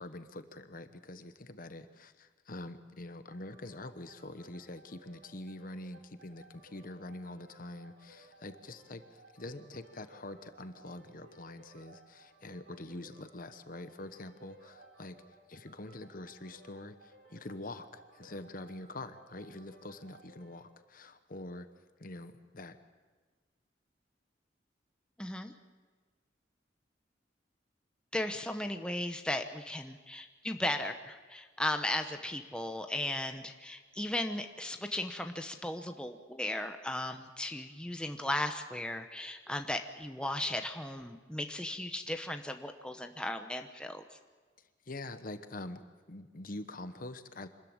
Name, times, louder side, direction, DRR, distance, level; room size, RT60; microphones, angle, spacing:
voice 1, 0.0-15.1 15.5-21.7 22.0-22.8 44.6-45.8 46.1-47.5, left 2 dB, 50° left, 10 dB, 1.1 m, -45 dB
sound 1, 3.3-20.7, right 2 dB, 90° right, 3.3 m, -60 dB
voice 2, 25.2-25.5 28.1-44.0, left 1 dB, 5° left, 6 dB, 0.9 m, -36 dB
25.5 x 13.5 x 8.8 m, 1.4 s
head